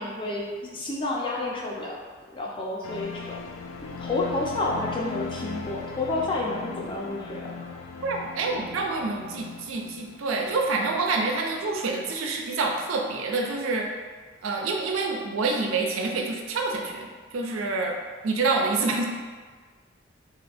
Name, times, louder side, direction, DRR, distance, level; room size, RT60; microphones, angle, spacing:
voice 1, 0.0-2.0 2.3-3.4 3.8-7.7, left 2 dB, 25° left, -3 dB, 0.5 m, -30 dB
sound 1, 2.8-12.0 12.3-12.4, left 4 dB, 85° left, 0.4 m, -39 dB
voice 2, 8.0-13.9 14.4-18.0 18.2-19.0, right 3 dB, 85° right, 1 dB, 0.5 m, -27 dB
2.6 x 2.4 x 3.4 m, 1.5 s
head